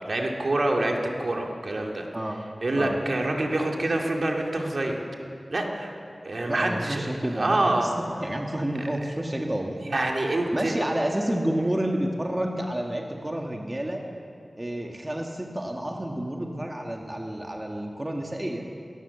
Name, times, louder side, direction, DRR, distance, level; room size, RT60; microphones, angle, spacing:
voice 1, 0.1-2.1 2.6-5.0 5.5-5.9 6.2-7.1 7.3-7.9 9.8-10.7, right 2 dB, 60° right, 1 dB, 2.5 m, -26 dB
voice 2, 6.5-7.9 8.2-9.8 10.5-14.0 14.6-18.6, right 1 dB, 20° right, 1 dB, 1.8 m, -29 dB
20.5 x 18.0 x 7.1 m, 2.4 s
wide cardioid pair, 80°, 0 cm